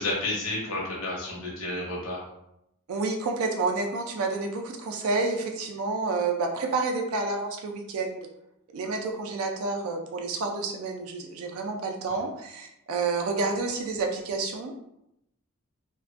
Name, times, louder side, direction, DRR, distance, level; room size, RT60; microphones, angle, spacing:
voice 1, 0.0-2.2 12.1-12.2, left 2 dB, 70° left, -4 dB, 0.7 m, -31 dB
voice 2, 2.9-8.3 8.7-14.7, right 3 dB, 80° right, 2 dB, 0.4 m, -29 dB
2.4 x 2.2 x 2.3 m, 0.82 s
head